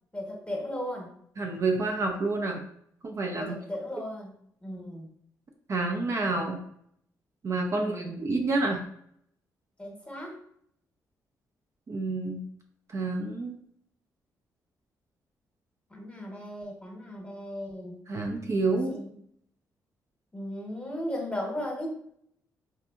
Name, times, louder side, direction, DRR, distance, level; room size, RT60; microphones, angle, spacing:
voice 1, 0.1-1.1 3.3-4.3 4.6-5.1 7.7-8.2 9.8-10.4 15.9-18.0 18.9-19.1 20.3-21.9, left 1 dB, 15° left, -1 dB, 0.9 m, -36 dB
voice 2, 1.4-2.6 3.0-3.5 5.7-6.6 7.4-8.8 11.9-12.4 12.9-13.6 18.1-19.0, right 3 dB, 40° right, 3 dB, 0.4 m, -28 dB
2.8 x 2.3 x 2.3 m, 0.68 s
supercardioid pair, 60°, 8 cm